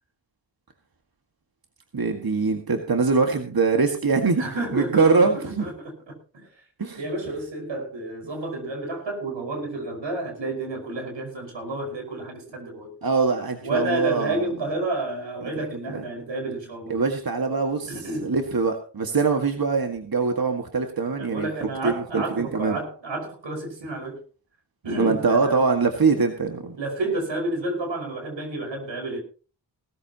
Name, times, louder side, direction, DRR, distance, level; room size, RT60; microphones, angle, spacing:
voice 1, 1.9-4.4 4.7-5.7 6.8-7.0 13.0-14.4 15.9-16.0 16.9-21.5 21.8-22.8 25.0-26.8, right 4 dB, 55° right, 4 dB, 1.9 m, -23 dB
voice 2, 4.4-6.5 7.0-12.9 13.6-17.0 17.9-18.3 21.1-24.2 24.8-25.7 26.8-29.2, right 2 dB, 80° right, 2 dB, 5.5 m, -30 dB
19.0 x 14.0 x 3.0 m, 0.37 s
cardioid pair, 45°, 44 cm